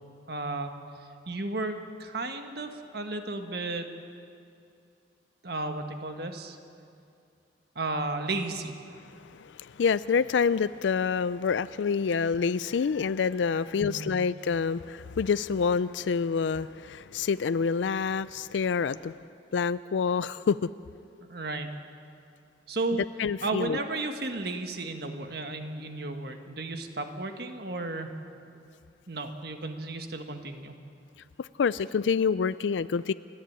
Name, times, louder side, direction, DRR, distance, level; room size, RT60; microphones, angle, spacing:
voice 1, 0.3-0.7 1.3-3.9 5.4-6.6 7.7-8.7 13.8-14.1 21.2-21.7 22.7-23.0 23.4-28.1 29.1-30.7, right 2 dB, 60° right, 6 dB, 1.6 m, -33 dB
voice 2, 9.4-19.1 19.5-20.7 23.2-23.8 31.4-33.1, left 5 dB, 85° left, 16 dB, 0.4 m, -27 dB
29.5 x 11.5 x 8.8 m, 2.5 s
head